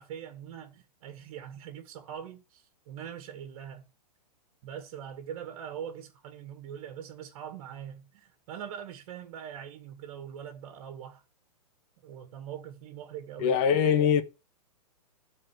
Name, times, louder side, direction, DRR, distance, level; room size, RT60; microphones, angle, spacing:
voice 1, 0.0-3.8 4.6-11.2 12.0-13.6, right 9 dB, 50° right, 2.0 m, -42 dB
voice 2, 13.4-14.2, left 8 dB, 35° left, 1.4 m, -22 dB
12.5 x 4.5 x 7.7 m
hypercardioid pair, 115°, 20 cm